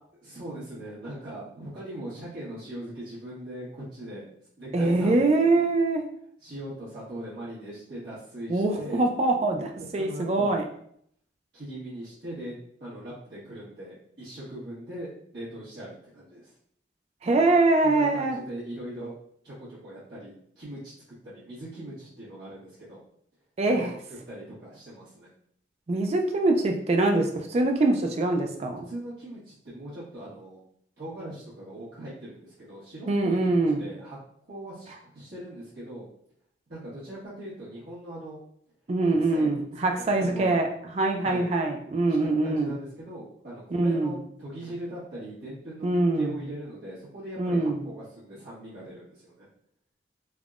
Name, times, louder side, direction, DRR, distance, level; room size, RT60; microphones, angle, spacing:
voice 1, 0.2-4.3 4.6-5.7 6.4-9.0 9.8-10.6 11.5-12.5 12.8-16.5 17.5-19.1 19.4-20.9 21.2-23.0 23.6-23.9 24.3-25.3 28.9-30.6 31.0-34.2 34.5-36.0 36.7-38.4 39.3-39.6 40.0-40.6 41.2-41.5 42.4-49.5, right 1 dB, 65° right, -11 dB, 1.1 m, -40 dB
voice 2, 4.7-6.0 8.5-10.6 17.2-18.4 23.6-23.9 25.9-28.9 33.1-33.8 38.9-42.7 43.7-44.2 45.8-46.4 47.4-47.8, right 2 dB, 35° right, 4 dB, 0.3 m, -24 dB
3.4 x 2.2 x 2.4 m, 0.67 s
head